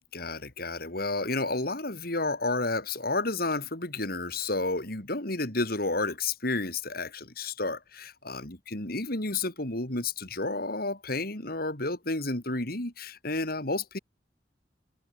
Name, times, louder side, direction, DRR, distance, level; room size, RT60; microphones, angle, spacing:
voice 1, 0.1-14.0, left 2 dB, 60° left, 4.6 m, -31 dB
head